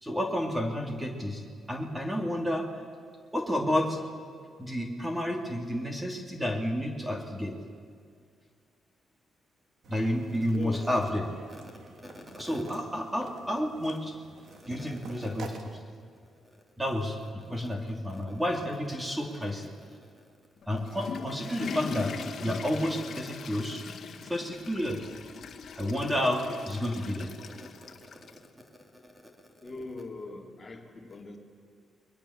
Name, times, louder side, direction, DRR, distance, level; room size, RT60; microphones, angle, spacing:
voice 1, 0.0-1.4 1.7-2.7 3.3-4.0 4.6-7.5 9.9-11.6 12.0-14.2 14.6-15.8 16.8-19.7 20.7-23.8 24.2-25.0 25.7-27.3 27.6-27.7, equal, 10° right, 2 dB, 3.1 m, -31 dB
sound 1, 9.8-15.7, right 4 dB, 65° right, 3.0 m, -49 dB
voice 2, 10.5-10.9 29.6-31.4, left 3 dB, 30° left, 1 dB, 3.5 m, -40 dB
Water / Toilet flush, 20.6-28.5, left 6 dB, 55° left, 1.8 m, -40 dB
29.5 x 22.0 x 7.5 m, 2.2 s
cardioid pair, 105°, 0 cm